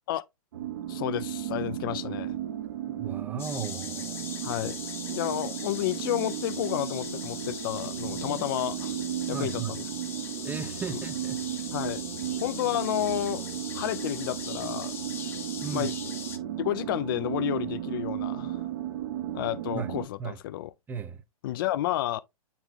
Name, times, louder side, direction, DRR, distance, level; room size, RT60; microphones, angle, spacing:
sound 1, 0.5-20.1, right 11 dB, 45° right, 0.8 m, -35 dB
voice 1, 0.9-2.4 4.4-4.8 5.1-8.9 9.3-9.8 11.7-12.0 12.4-13.5 13.7-14.9 15.7-15.9 16.6-18.6 19.3-20.7 21.4-22.2, left 14 dB, 35° left, 0.6 m, -31 dB
voice 2, 3.0-4.3 9.3-9.7 10.4-11.4 12.2-12.3 15.6-15.9 19.7-19.9 20.2-20.4 20.9-21.2, right 6 dB, 10° right, 0.6 m, -36 dB
sound 2, 3.4-16.4, left 6 dB, 10° left, 0.9 m, -40 dB
8.8 x 4.0 x 2.8 m
figure-of-eight pair, 115°, 19 cm